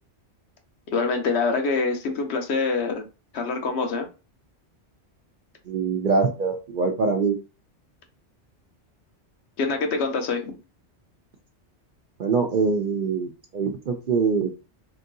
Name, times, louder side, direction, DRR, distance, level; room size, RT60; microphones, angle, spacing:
voice 1, 0.9-3.0 3.3-4.1 9.6-10.6, left 4 dB, 70° left, 4 dB, 0.9 m, -25 dB
voice 2, 5.7-7.4 12.2-14.5, right 4 dB, 60° right, 3 dB, 0.6 m, -24 dB
2.9 x 2.6 x 2.6 m, 0.30 s
omnidirectional pair, 1.2 m